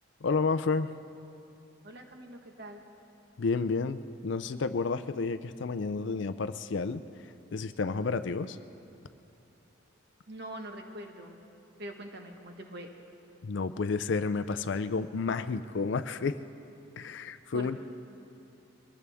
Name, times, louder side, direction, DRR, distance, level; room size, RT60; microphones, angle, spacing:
voice 1, 0.2-0.9 3.4-7.0 7.5-8.6 13.4-16.4 17.0-17.8, left 4 dB, 60° left, 12 dB, 0.4 m, -31 dB
voice 2, 1.8-2.8 10.3-11.4 11.8-12.9 17.5-17.8, right 1 dB, 55° right, 3 dB, 1.4 m, -43 dB
23.0 x 18.0 x 3.5 m, 2.8 s
head